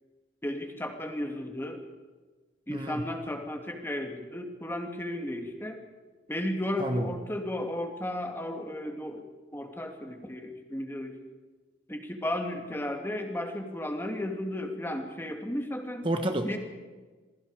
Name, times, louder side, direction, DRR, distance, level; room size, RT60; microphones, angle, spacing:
voice 1, 0.4-1.8 2.7-5.8 6.3-9.3 9.5-11.2 11.9-16.0 16.4-16.6, left 1 dB, 10° left, 3 dB, 2.3 m, -34 dB
voice 2, 2.7-3.0 6.8-7.1 16.0-16.6, right 1 dB, 25° right, 5 dB, 1.3 m, -29 dB
27.5 x 21.5 x 4.9 m, 1.3 s
head